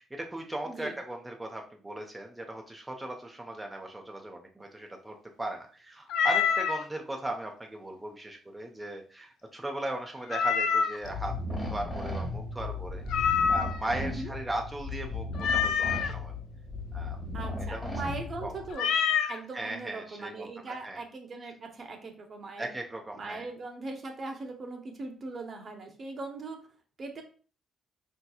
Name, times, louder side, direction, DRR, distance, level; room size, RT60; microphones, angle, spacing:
voice 1, 0.0-16.3 16.9-17.2 17.5-17.9 18.4-18.6 19.5-21.0 22.6-23.5, right 1 dB, 10° right, 2 dB, 0.6 m, -38 dB
voice 2, 0.6-0.9 14.0-14.3 17.3-19.0 19.3-22.7 23.1-26.7 27.0-27.2, right 3 dB, 50° right, 4 dB, 0.8 m, -40 dB
Meow, 6.1-6.8 10.3-11.1 13.1-13.9 15.4-16.1 18.7-19.4, left 7 dB, 80° left, 0.3 m, -26 dB
sound 1, 11.0-18.7, left 2 dB, 10° left, 1.2 m, -36 dB
4.4 x 2.9 x 2.3 m, 0.39 s
cardioid pair, 90°, 0 cm